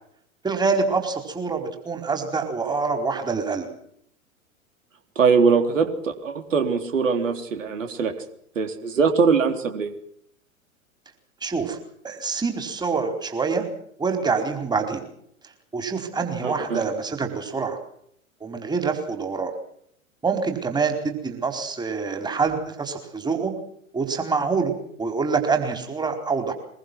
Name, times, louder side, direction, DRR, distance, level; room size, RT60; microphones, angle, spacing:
voice 1, 0.4-3.7 11.4-11.8 12.0-13.7 14.0-15.0 15.7-17.8 18.4-19.5 20.2-23.5 23.9-26.5, right 4 dB, 10° right, 5 dB, 4.5 m, -26 dB
voice 2, 5.2-8.1 8.6-9.9 16.4-16.8, right 5 dB, 65° right, 7 dB, 3.8 m, -22 dB
23.5 x 23.0 x 6.3 m, 0.68 s
figure-of-eight pair, 95°, 41 cm